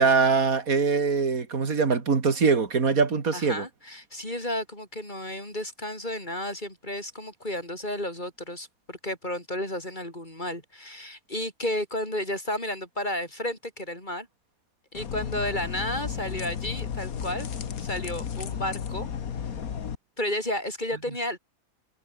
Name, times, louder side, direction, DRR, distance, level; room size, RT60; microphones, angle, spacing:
voice 1, 0.0-3.6, right 5 dB, 85° right, 2.7 m, -23 dB
voice 2, 3.3-14.3 14.9-17.5 17.8-19.1 20.2-21.4, left 1 dB, 35° left, 6.8 m, -32 dB
sound 1, 14.9-19.9, left 7 dB, 90° left, 1.8 m, -33 dB
omnidirectional pair, 1.5 m